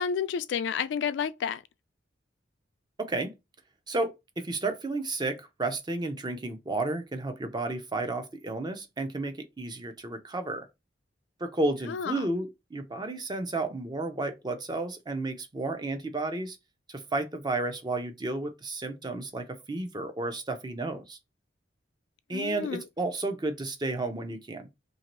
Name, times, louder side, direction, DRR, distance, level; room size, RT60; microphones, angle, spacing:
voice 1, 0.0-1.6 11.9-12.3 22.3-22.8, left 7 dB, 65° left, 0.3 m, -30 dB
voice 2, 3.0-3.3 3.9-10.7 11.4-16.6 16.9-21.2 22.3-24.7, right 2 dB, 25° right, 0.5 m, -32 dB
2.9 x 2.7 x 3.0 m
head